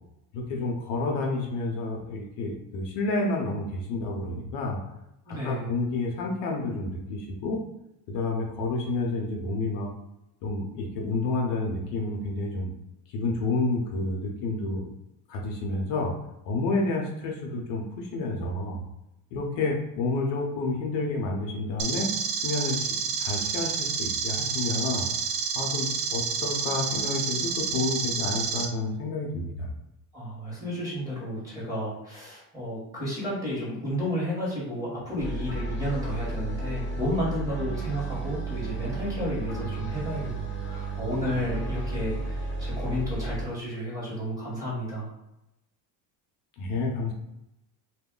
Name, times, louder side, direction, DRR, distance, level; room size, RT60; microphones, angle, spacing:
voice 1, 0.3-4.8 5.3-7.6 8.1-9.9 10.4-12.7 13.1-14.9 15.3-16.1 16.4-18.8 19.3-22.1 22.4-25.1 25.5-29.7 46.6-47.1, left 2 dB, 60° left, -1 dB, 0.7 m, -30 dB
voice 2, 5.3-5.7 17.4-17.6 30.1-45.1, equal, 5° right, -7 dB, 1.2 m, -32 dB
sound 1, 21.8-28.6, right 6 dB, 65° right, 0.7 m, -29 dB
sound 2, 35.2-43.4, right 3 dB, 25° left, 0.8 m, -33 dB
2.3 x 2.1 x 3.6 m, 0.88 s
cardioid pair, 135°, 47 cm